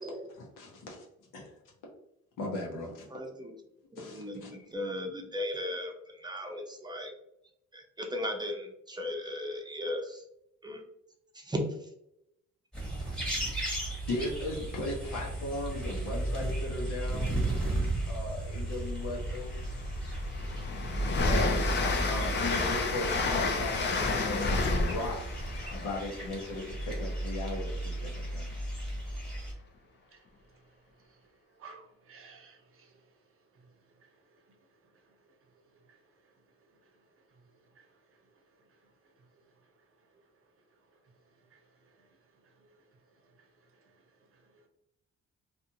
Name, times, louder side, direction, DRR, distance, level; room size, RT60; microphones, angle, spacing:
voice 1, 0.3-1.1 1.3-1.6 2.4-3.1 4.0-4.7 14.1-19.5 21.2-21.7 22.0-23.9 24.7-25.4 25.7-28.5, left 1 dB, 85° left, 0.9 m, -37 dB
voice 2, 3.1-3.5 3.9-7.1 7.7-10.2 10.6-10.8 11.3-11.9, left 1 dB, 15° right, 0.6 m, -37 dB
sound 1, 12.7-29.5, right 1 dB, 5° left, 1.1 m, -35 dB
voice 3, 13.7-14.1 29.4-44.7, right 4 dB, 45° right, 0.7 m, -61 dB
Train, 19.0-19.1 19.5-27.3, left 3 dB, 35° left, 0.5 m, -31 dB
2.5 x 2.4 x 2.7 m
cardioid pair, 90°, 30 cm